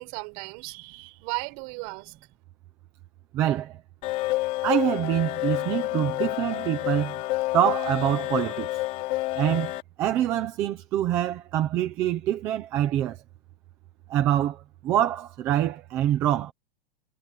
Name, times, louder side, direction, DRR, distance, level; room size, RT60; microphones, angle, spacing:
voice 1, 0.0-2.1, right 30 dB, 35° right, 6.5 m, -36 dB
voice 2, 3.3-3.8 4.6-7.2 7.5-8.7 9.4-9.7 10.0-13.2 14.1-16.5, right 11 dB, 10° right, 0.4 m, -25 dB
sound 1, 4.0-9.8, left 19 dB, 25° left, 2.4 m, -29 dB
supercardioid pair, 180°, 29 cm